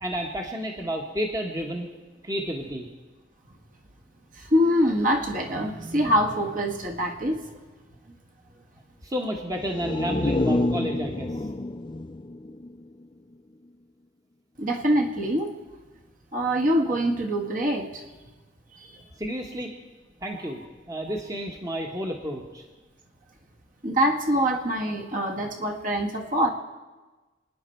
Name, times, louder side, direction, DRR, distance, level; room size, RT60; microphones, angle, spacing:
voice 1, 0.0-1.9 2.2-2.9 9.0-11.3 19.2-19.7 20.2-22.6, equal, 20° right, 1 dB, 1.2 m, -31 dB
voice 2, 4.4-7.5 14.6-15.5 16.3-18.0 18.8-19.0 23.8-26.5, equal, 45° right, 2 dB, 1.6 m, -24 dB
sound 1, 9.6-13.3 13.7-13.8, left 2 dB, 25° left, 0.4 m, -28 dB
28.0 x 9.7 x 4.5 m, 1.2 s
head